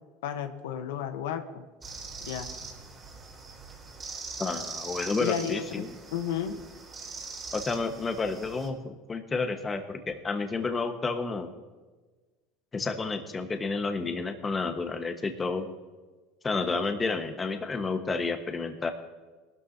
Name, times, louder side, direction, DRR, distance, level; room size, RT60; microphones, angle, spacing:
voice 1, 0.2-1.6 2.2-2.5 5.2-6.6, left 9 dB, 85° left, 7 dB, 1.0 m, -33 dB
sound 1, 1.8-8.7, right 4 dB, 25° right, 3.9 m, -42 dB
voice 2, 4.4-5.9 7.5-11.5 12.7-15.7 16.4-18.9, left 4 dB, 20° left, 6 dB, 1.3 m, -30 dB
19.5 x 12.5 x 2.8 m, 1.3 s
supercardioid pair, 105°, 0 cm